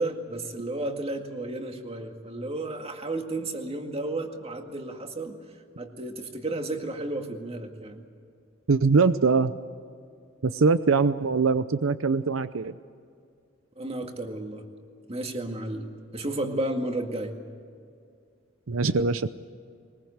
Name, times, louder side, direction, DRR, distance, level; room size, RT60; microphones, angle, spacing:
voice 1, 0.0-5.4 5.8-8.0 13.8-14.6 15.1-15.9 16.1-17.3, right 2 dB, 30° right, 4 dB, 2.0 m, -32 dB
voice 2, 8.7-9.5 10.4-12.7 18.7-19.3, right 4 dB, 85° right, 13 dB, 0.7 m, -22 dB
22.0 x 20.5 x 8.1 m, 2.3 s
head